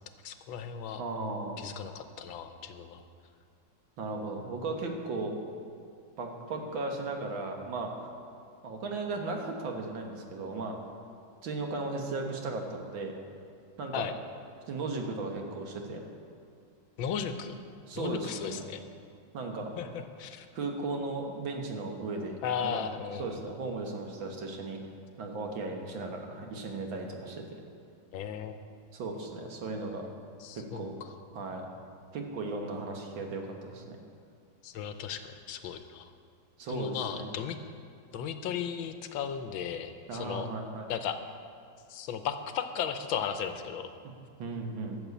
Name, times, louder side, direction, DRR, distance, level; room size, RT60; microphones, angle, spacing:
voice 1, 0.2-1.0 1.6-3.0 13.9-14.1 17.0-17.6 17.9-18.8 19.8-20.5 22.4-23.2 28.1-28.5 30.4-30.9 34.6-36.1 36.7-37.6 38.1-40.5 40.9-41.2 41.9-43.9, left 8 dB, 85° left, 8 dB, 1.5 m, -35 dB
voice 2, 1.0-1.6 4.0-5.3 6.2-8.1 8.6-10.8 11.4-13.1 13.8-14.1 14.7-16.0 17.9-18.6 19.3-19.7 20.6-22.8 23.2-24.8 25.2-27.4 28.9-30.1 30.6-31.0 31.3-31.7 32.1-34.0 36.6-37.3 40.1-40.9 44.0-44.1 44.4-45.0, right 3 dB, 75° right, 2 dB, 2.1 m, -36 dB
12.5 x 6.8 x 8.2 m, 2.3 s
omnidirectional pair, 2.1 m